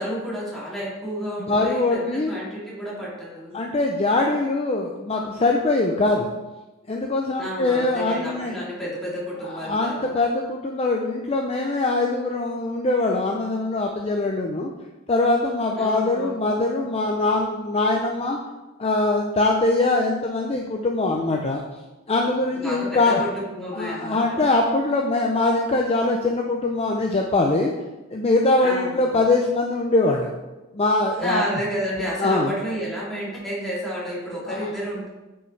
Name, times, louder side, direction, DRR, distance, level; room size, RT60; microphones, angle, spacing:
voice 1, 0.0-3.5 7.4-10.1 15.8-16.3 22.5-24.4 28.6-29.2 31.2-35.1, equal, ahead, -8 dB, 2.8 m, -31 dB
voice 2, 1.4-2.4 3.5-6.3 6.9-8.5 9.5-14.7 15.1-18.4 18.8-21.6 22.1-23.2 23.7-27.7 28.1-30.3 30.7-31.4 32.2-32.5 34.5-34.7, left 2 dB, 30° left, 1 dB, 0.5 m, -22 dB
9.4 x 5.5 x 3.3 m, 1.1 s
head